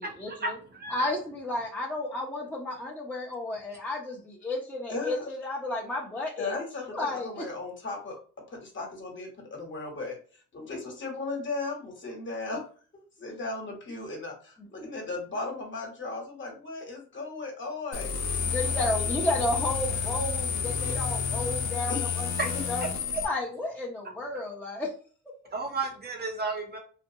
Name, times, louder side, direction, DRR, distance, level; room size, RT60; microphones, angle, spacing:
voice 1, 0.2-0.6 0.9-6.5 6.9-7.3 18.5-22.3 22.7-22.8 23.2-24.9, left 2 dB, 5° left, -4 dB, 0.6 m, -32 dB
voice 2, 0.7-1.1 22.4-22.6 25.5-26.8, right 3 dB, 35° right, 2 dB, 0.6 m, -32 dB
voice 3, 4.9-5.3 6.4-8.2 8.5-12.6 12.9-18.3 18.6-19.6 21.9-22.3, left 3 dB, 40° left, 1 dB, 1.1 m, -37 dB
sound 1, 17.9-23.2, left 5 dB, 60° left, 0.5 m, -30 dB
2.5 x 2.2 x 2.7 m, 0.42 s
cardioid pair, 90°, 30 cm